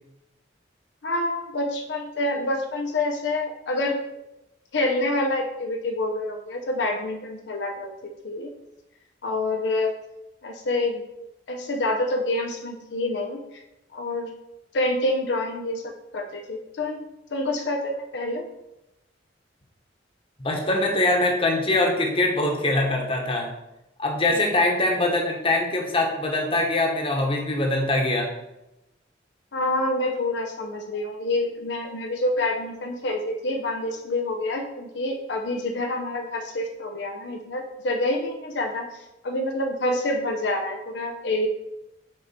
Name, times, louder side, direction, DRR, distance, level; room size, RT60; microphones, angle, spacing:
voice 1, 1.0-4.0 4.7-7.9 8.2-8.5 9.2-9.9 10.4-11.0 11.5-13.6 13.9-14.3 14.7-17.1 17.3-18.5 29.5-38.9 39.2-41.5, left 2 dB, 70° left, 3 dB, 0.7 m, -27 dB
voice 2, 20.4-23.5 24.0-28.3, left 2 dB, 30° left, 1 dB, 1.2 m, -23 dB
7.0 x 4.5 x 4.3 m, 0.92 s
head